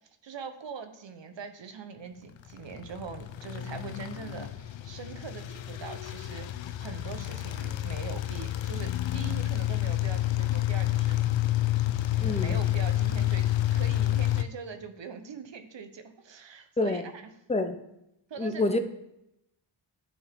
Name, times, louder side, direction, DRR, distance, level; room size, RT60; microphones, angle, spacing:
voice 1, 0.2-11.2 12.1-17.2 18.3-18.8, right 6 dB, 60° right, 8 dB, 0.9 m, -42 dB
sound 1, 2.5-14.4, left 14 dB, 65° left, 0.6 m, -29 dB
voice 2, 12.2-12.6 16.8-17.1 17.5-17.8 18.4-18.8, left 2 dB, 15° left, 8 dB, 0.7 m, -27 dB
9.9 x 4.4 x 3.6 m, 0.84 s
cardioid pair, 55°, 49 cm